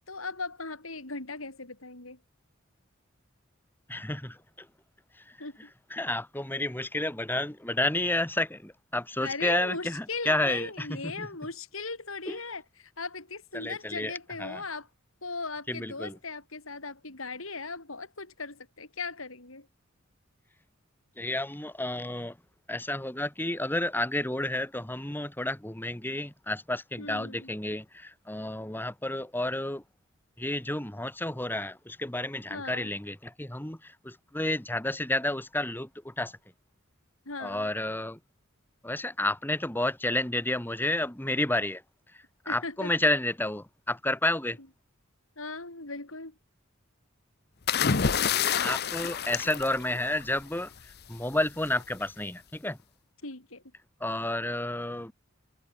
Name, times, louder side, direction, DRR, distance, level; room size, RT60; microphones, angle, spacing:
voice 1, 0.1-2.2 5.4-5.7 9.2-14.9 15.2-19.7 27.0-27.5 32.5-32.9 37.3-37.7 42.5-42.9 45.4-46.3 53.2-53.6, left 3 dB, 80° left, 5.5 m, -38 dB
voice 2, 3.9-4.7 5.3-5.4 5.9-11.3 12.3-12.4 13.5-14.1 14.4-14.6 15.7-16.2 21.2-22.4 22.7-29.8 30.4-36.3 37.4-38.2 38.8-41.8 42.5-44.6 47.8-50.7 51.1-52.8 54.0-55.1, left 1 dB, 10° left, 1.8 m, -31 dB
sound 1, 47.7-50.4 51.7-52.0, left 7 dB, 50° left, 0.8 m, -28 dB
head